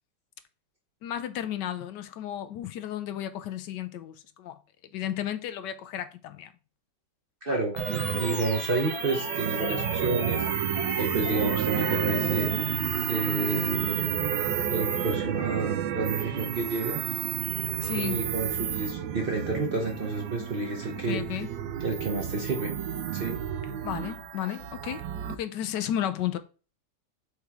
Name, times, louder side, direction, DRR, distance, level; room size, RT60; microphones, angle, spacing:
voice 1, 1.0-4.6 4.9-6.5 7.5-7.6 17.8-18.3 21.0-21.5 23.8-26.4, left 11 dB, 75° left, 1.2 m, -33 dB
voice 2, 7.4-12.5 13.1-14.1 14.7-17.0 17.9-21.2 21.8-22.7 23.1-23.4, right 3 dB, 45° right, 0.8 m, -30 dB
sound 1, 7.8-25.4, right 9 dB, 85° right, 1.3 m, -30 dB
Animal, 7.9-15.9, left 3 dB, 45° left, 1.2 m, -40 dB
6.6 x 3.4 x 4.6 m
omnidirectional pair, 1.9 m